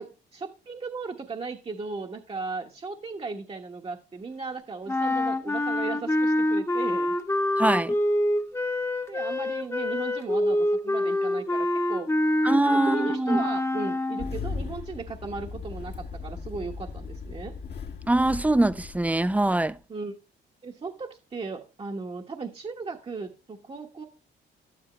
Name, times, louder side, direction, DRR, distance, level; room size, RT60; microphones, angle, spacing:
voice 1, 0.0-7.2 9.1-12.1 12.6-17.5 19.9-20.2 20.6-24.1, right 4 dB, 30° right, 1.2 m, -36 dB
sound 1, 4.9-14.4, left 1 dB, 15° left, 1.2 m, -26 dB
voice 2, 7.6-7.9 12.4-13.4 18.1-19.7, right 2 dB, 5° right, 0.6 m, -23 dB
Engine starting, 14.2-19.7, left 5 dB, 55° left, 1.7 m, -38 dB
12.0 x 10.0 x 3.2 m
cardioid pair, 90°, 20 cm